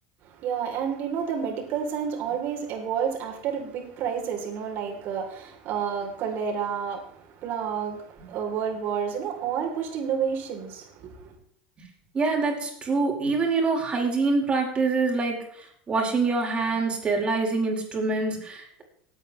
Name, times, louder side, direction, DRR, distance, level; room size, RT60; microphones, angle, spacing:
voice 1, 0.2-11.4, right 7 dB, 55° right, 3.3 m, -30 dB
voice 2, 12.1-18.8, right 3 dB, 25° right, 4.5 m, -25 dB
19.0 x 8.9 x 3.2 m
supercardioid pair, 110°, 4 cm